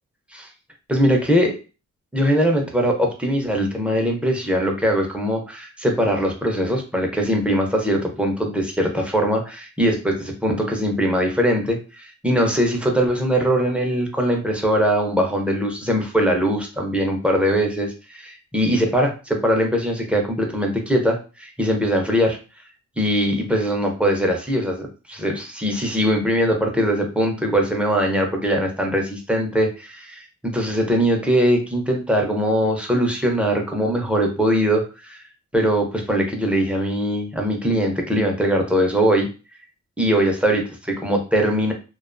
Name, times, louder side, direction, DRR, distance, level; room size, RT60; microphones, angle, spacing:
voice 1, 0.9-1.6 2.1-22.4 23.0-35.2 35.5-39.3 40.0-41.7, equal, 5° right, 1 dB, 0.5 m, -21 dB
2.4 x 2.2 x 2.4 m, 0.33 s
cardioid pair, 115°, 31 cm